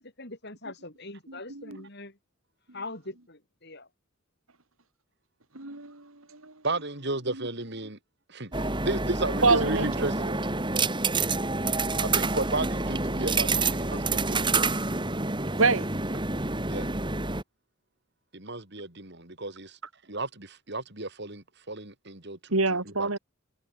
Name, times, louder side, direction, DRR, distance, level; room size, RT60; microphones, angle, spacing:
voice 1, 0.0-2.2 2.7-3.9, left 2 dB, 50° left, 6.0 m, -42 dB
voice 2, 5.5-6.5 9.4-10.1 15.6-15.9 22.5-23.2, right 3 dB, 75° right, 3.1 m, -26 dB
voice 3, 6.6-8.0 8.3-10.5 12.0-14.5 16.7-16.9 18.3-19.8 20.1-22.4 22.9-23.2, right 2 dB, 50° right, 3.9 m, -33 dB
sound 1, 8.5-17.4, right 3 dB, 20° right, 2.5 m, -28 dB
head